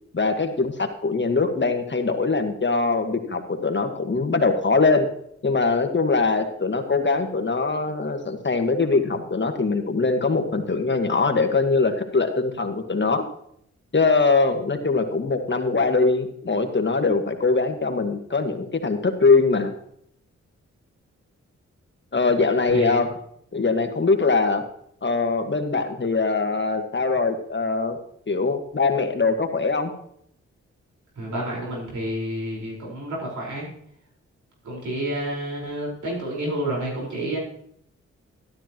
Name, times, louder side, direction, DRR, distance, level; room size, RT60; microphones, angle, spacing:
voice 1, 0.1-5.1 5.4-13.2 13.9-19.7 22.1-23.1 23.5-24.6 25.0-28.0 28.3-29.9, left 4 dB, 40° left, 6 dB, 1.7 m, -22 dB
voice 2, 22.7-23.0 31.1-33.7 34.6-37.4, right 1 dB, 80° right, -4 dB, 4.8 m, -29 dB
12.5 x 12.0 x 3.0 m, 0.70 s
cardioid pair, 50°, 29 cm